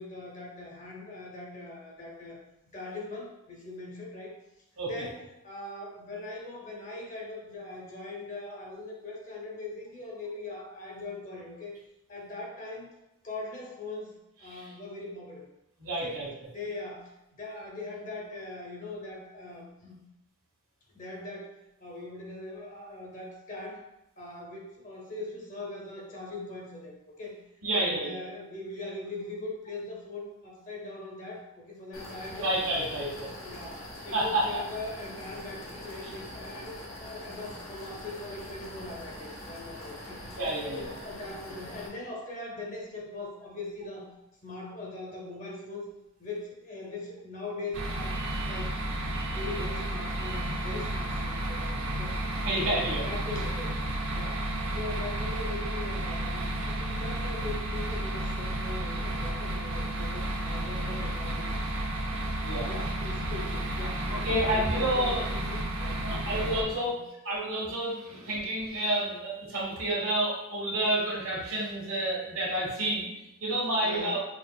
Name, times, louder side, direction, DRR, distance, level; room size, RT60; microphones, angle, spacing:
voice 1, 0.0-2.4 2.7-4.3 4.8-11.8 12.1-12.9 13.2-15.4 16.0-16.2 16.5-20.0 20.9-23.8 24.2-26.9 27.2-27.4 27.7-32.5 32.8-40.2 40.7-44.1 44.4-45.9 46.2-48.2 48.4-48.8 49.2-52.2 52.6-53.9 54.1-54.5 54.7-61.6 62.7-66.4 66.8-67.0 68.1-68.4 73.8-74.3, left 2 dB, 35° left, -2 dB, 0.8 m, -41 dB
voice 2, 15.8-16.3 27.6-28.2 32.4-33.3 34.1-34.4 40.4-40.9 52.4-53.0 62.4-62.7 64.2-65.2 66.0-67.0 67.2-73.1 73.4-74.2, right 1 dB, 80° right, -6 dB, 1.3 m, -29 dB
sound 1, 31.9-41.9, left 1 dB, 70° left, 1.0 m, -43 dB
sound 2, 47.7-66.6, right 1 dB, 60° right, 0.6 m, -32 dB
5.5 x 2.5 x 2.3 m, 0.90 s
head